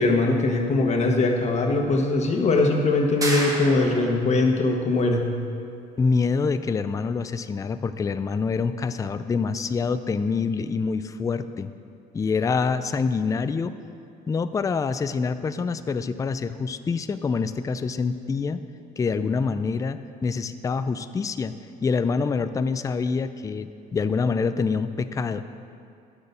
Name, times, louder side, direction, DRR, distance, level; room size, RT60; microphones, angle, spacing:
voice 1, 0.0-5.2, left 2 dB, 40° left, 2 dB, 1.4 m, -21 dB
sound 1, 3.2-4.3, right 1 dB, 20° right, 1.6 m, -29 dB
voice 2, 6.0-11.7 12.1-13.8 14.3-18.6 19.0-21.5 21.8-25.4, left 4 dB, 20° left, 11 dB, 0.4 m, -26 dB
9.8 x 6.6 x 6.8 m, 2.4 s
cardioid pair, 110°, 17 cm